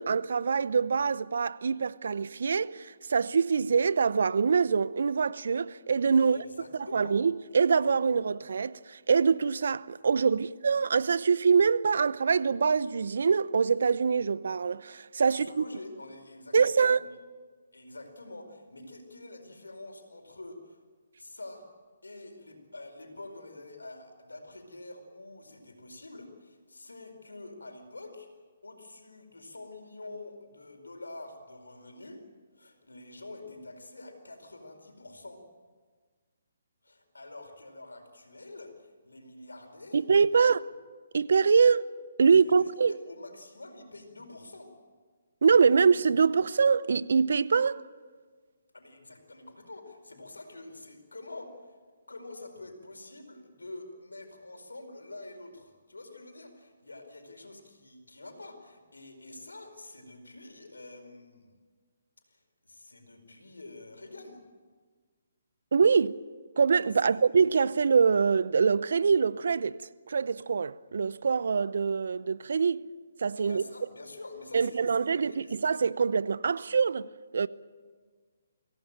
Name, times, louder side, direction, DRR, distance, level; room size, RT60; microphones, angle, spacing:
voice 1, 0.0-6.4 6.9-15.6 16.5-17.0 39.9-40.6 41.1-41.9 42.2-42.9 45.4-47.8 65.7-66.1 66.6-72.8 73.2-73.6 74.5-77.1 77.3-77.5, right 5 dB, 65° right, 0.7 m, -24 dB
voice 2, 6.2-7.2 15.2-17.1 17.7-20.8 21.2-21.7 22.0-28.3 28.6-32.2 32.6-35.4 36.8-40.6 42.3-44.7 48.7-51.8 52.1-61.5 62.3-64.4 67.0-67.2 73.4-75.8, left 2 dB, 90° left, 4.7 m, -47 dB
24.0 x 17.0 x 9.0 m
figure-of-eight pair, 140°, 0 cm